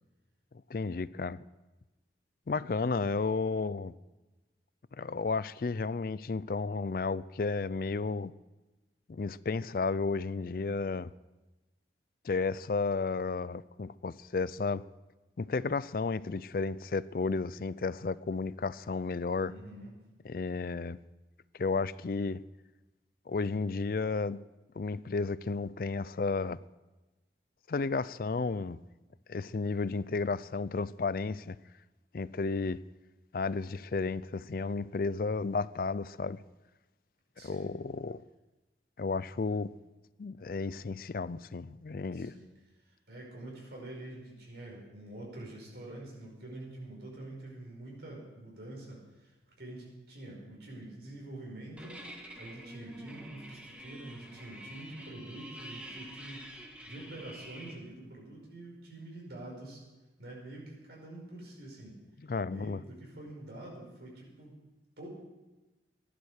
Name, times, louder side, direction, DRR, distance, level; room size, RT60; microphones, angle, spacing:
voice 1, 0.7-1.4 2.5-3.9 5.0-8.3 9.1-11.1 12.2-14.8 15.4-19.5 20.2-21.0 21.6-22.4 23.3-24.4 24.8-26.6 27.7-28.8 29.3-31.6 32.1-32.8 33.3-36.4 37.4-38.2 39.0-39.7 40.2-42.3 62.3-62.8, left 4 dB, 50° left, 0.4 m, -32 dB
voice 2, 19.5-19.9 37.4-37.7 42.1-42.5 42.8-52.1 52.4-56.5 56.9-59.8 60.2-61.9 62.5-64.6 65.0-65.1, right 1 dB, 70° right, 5.1 m, -46 dB
sound 1, 51.8-57.8, right 1 dB, 5° right, 1.7 m, -47 dB
16.5 x 11.0 x 6.5 m
head